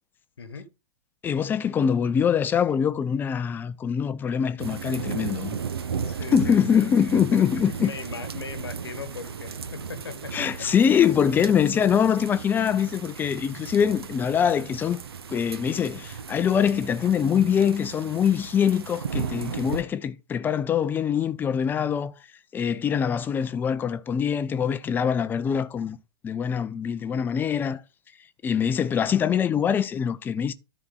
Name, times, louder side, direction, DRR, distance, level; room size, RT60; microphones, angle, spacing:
voice 1, 0.4-0.7 6.0-7.4 7.7-10.7 22.7-23.0 29.1-29.2, left 5 dB, 70° left, 1.2 m, -39 dB
voice 2, 1.2-5.6 6.3-7.9 10.3-15.0 15.3-22.1 22.5-26.0 26.2-27.8 28.4-30.5, left 8 dB, 15° left, 0.5 m, -23 dB
sound 1, 4.6-19.8, right 6 dB, 65° right, 0.8 m, -35 dB
13.0 x 4.3 x 3.8 m
figure-of-eight pair, 105°, 14 cm